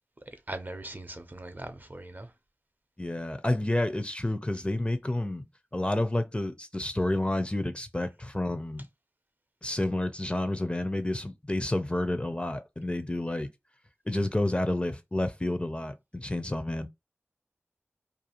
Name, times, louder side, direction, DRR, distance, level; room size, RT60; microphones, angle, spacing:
voice 1, 0.3-2.3, right 2 dB, 40° right, 0.5 m, -40 dB
voice 2, 3.0-5.4 5.7-8.8 9.6-13.5 14.1-16.9, left 1 dB, 25° left, 0.4 m, -30 dB
2.5 x 2.3 x 2.8 m
wide cardioid pair, 40°, 5 cm